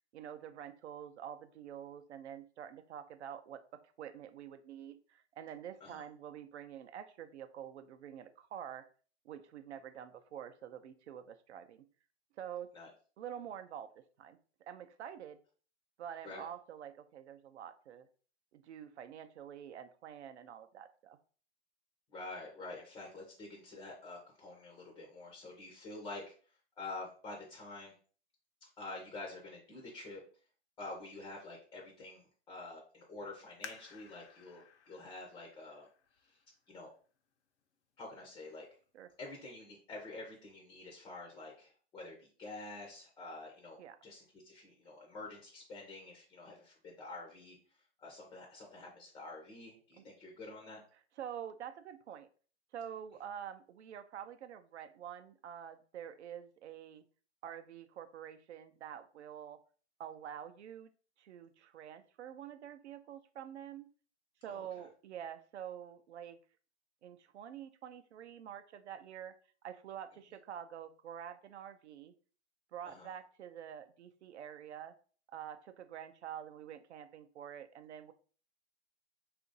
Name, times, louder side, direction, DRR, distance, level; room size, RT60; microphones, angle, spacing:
voice 1, 0.1-8.9 9.2-11.9 12.4-12.7 13.2-13.9 14.2-15.4 16.0-18.1 18.5-21.2 38.9-39.1 43.8-44.0 50.0-50.1 51.2-52.3 52.7-57.0 57.4-59.6 60.0-60.9 61.2-63.9 64.4-66.4 67.0-69.3 69.6-72.1 72.7-74.9 75.3-78.1, right 9 dB, 80° right, 10 dB, 0.6 m, -47 dB
voice 2, 22.1-26.3 26.8-27.9 28.6-30.2 30.8-35.9 36.2-36.4 36.7-36.9 38.0-38.7 39.2-47.6 48.0-50.8 64.5-64.7 72.8-73.1, left 2 dB, 10° left, -1 dB, 0.4 m, -48 dB
sound 1, 33.6-37.0 37.6-37.7 38.3-38.7 39.1-39.2, left 7 dB, 85° left, 0.7 m, -54 dB
2.8 x 2.5 x 3.9 m, 0.41 s
hypercardioid pair, 140°, 33 cm